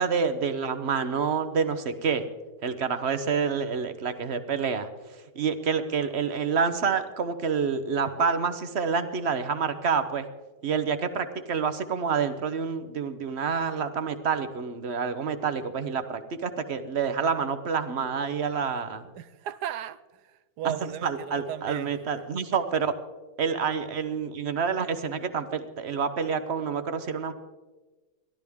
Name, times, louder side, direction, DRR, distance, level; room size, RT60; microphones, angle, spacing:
voice 1, 0.0-2.3 2.6-4.9 5.3-10.3 10.6-19.0 20.6-22.9 23.4-27.3, right 6 dB, 45° right, 1.1 m, -28 dB
voice 2, 19.1-21.9, right 11 dB, 80° right, 1.2 m, -36 dB
29.5 x 12.5 x 3.6 m
omnidirectional pair, 1.8 m